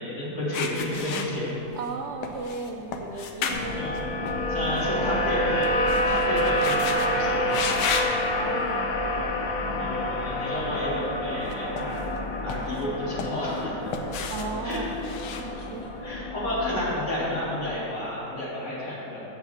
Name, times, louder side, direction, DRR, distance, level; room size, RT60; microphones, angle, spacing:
voice 1, 0.0-1.6 3.1-3.3 3.7-4.1 4.5-5.7 6.1-7.7 9.7-12.0 12.4-13.9 14.6-14.8 16.0-19.2, left 1 dB, 40° left, -8 dB, 2.7 m, -31 dB
sound 1, 0.5-1.9 2.2-4.8 5.1-7.1 7.5-8.2 8.8-9.1 11.4-12.2 12.5-13.6 13.9-16.1, left 5 dB, 80° left, 1.3 m, -33 dB
voice 2, 1.7-3.8 4.7-5.4 8.4-8.8 14.3-14.9 15.3-15.9, right 4 dB, 85° right, 2 dB, 0.6 m, -35 dB
sound 2, 3.5-17.7, left 1 dB, 65° left, 1.3 m, -28 dB
7.3 x 5.8 x 7.3 m, 2.8 s
omnidirectional pair, 1.8 m